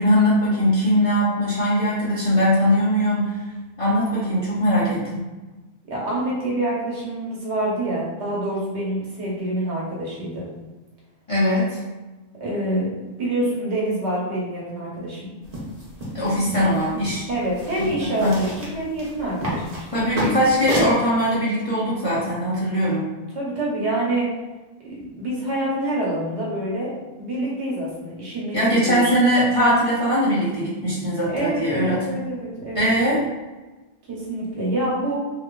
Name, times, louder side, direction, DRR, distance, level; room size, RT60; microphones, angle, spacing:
voice 1, 0.0-3.4 3.8-5.2 11.3-11.8 16.1-17.3 17.8-18.4 19.9-23.1 28.5-32.2 32.7-33.2, equal, 35° left, -9 dB, 0.6 m, -21 dB
voice 2, 5.9-10.5 12.4-12.9 13.2-15.3 17.3-20.0 23.3-24.3 24.8-29.1 31.3-32.9 34.1-35.1, right 1 dB, 70° right, -5 dB, 1.1 m, -26 dB
sound 1, 15.4-21.0, equal, 40° right, 0.8 m, -31 dB
2.8 x 2.5 x 2.2 m, 1.2 s
omnidirectional pair, 1.2 m